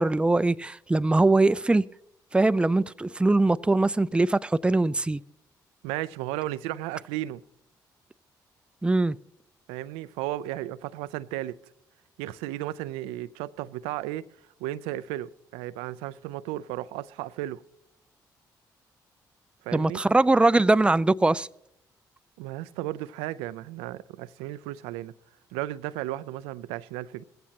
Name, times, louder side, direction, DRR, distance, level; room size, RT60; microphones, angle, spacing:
voice 1, 0.0-1.8 2.3-5.2 8.8-9.2 19.7-21.5, right 2 dB, 10° right, 0.4 m, -22 dB
voice 2, 5.8-7.4 9.7-11.6 12.2-14.2 14.6-17.6 19.6-20.0 22.4-25.1 25.5-27.2, right 15 dB, 80° right, 0.4 m, -34 dB
20.5 x 15.5 x 2.9 m
hypercardioid pair, 45°, 10 cm